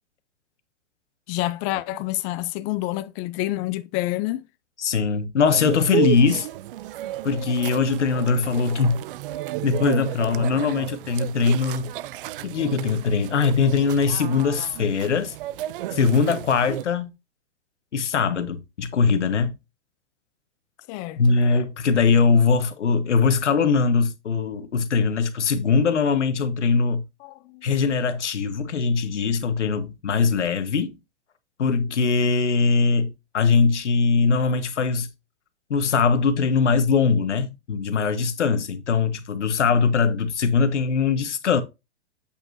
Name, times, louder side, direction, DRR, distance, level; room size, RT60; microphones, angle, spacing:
voice 1, 1.3-4.4 20.9-21.4 27.2-27.6, left 17 dB, 25° left, 0.4 m, -28 dB
voice 2, 4.8-6.5 7.2-9.0 9.6-11.9 12.4-15.3 15.9-17.1 17.9-19.5 21.2-27.0 27.6-31.0 31.6-35.1 35.7-41.6, left 5 dB, 90° left, 1.4 m, -21 dB
sound 1, 5.5-16.9, right 14 dB, 50° right, 0.4 m, -32 dB
8.5 x 5.4 x 2.6 m
hypercardioid pair, 135°, 34 cm